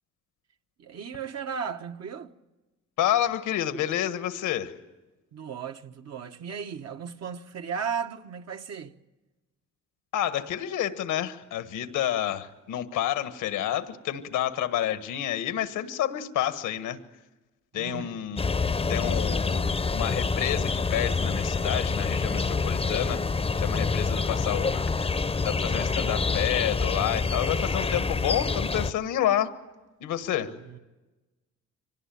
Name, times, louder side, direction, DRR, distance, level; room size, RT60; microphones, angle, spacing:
voice 1, 0.8-2.3 5.3-8.9 17.7-18.2 30.5-30.8, right 6 dB, 60° right, 1.3 m, -35 dB
voice 2, 3.0-4.7 10.1-17.0 17.7-18.4 18.9-23.2 23.5-25.2 25.4-29.5 30.0-30.5, left 11 dB, 85° left, 1.5 m, -29 dB
sound 1, 18.4-28.9, left 4 dB, 20° left, 0.7 m, -27 dB
25.0 x 19.0 x 9.2 m
cardioid pair, 90°, 30 cm